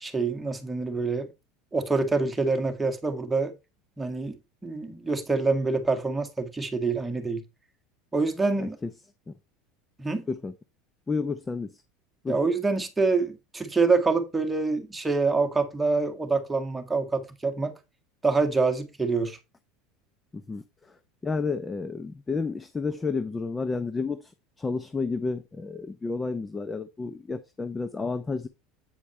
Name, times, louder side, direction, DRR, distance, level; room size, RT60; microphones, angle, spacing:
voice 1, 0.0-1.3 1.7-3.5 4.0-4.4 4.6-7.4 8.1-8.8 10.0-10.3 12.3-17.7 18.2-19.4, right 3 dB, 10° right, 1.7 m, -26 dB
voice 2, 8.6-8.9 9.3-9.4 10.3-10.5 11.1-11.7 12.2-12.4 20.3-21.0 21.2-24.3 24.6-28.5, left 4 dB, 15° left, 0.7 m, -31 dB
8.8 x 4.9 x 4.3 m
supercardioid pair, 130°, 0 cm